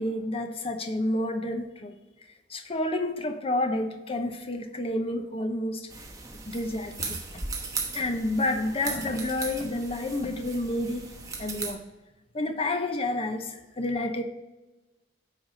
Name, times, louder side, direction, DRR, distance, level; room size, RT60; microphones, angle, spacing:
voice 1, 0.0-1.9 2.5-5.9 6.4-7.2 7.9-11.1 11.4-11.8 12.3-14.2, left 1 dB, 30° left, 6 dB, 0.8 m, -29 dB
sound 1, 5.9-11.7, right 4 dB, 20° right, 1.1 m, -37 dB
9.1 x 4.8 x 4.9 m, 1.1 s
head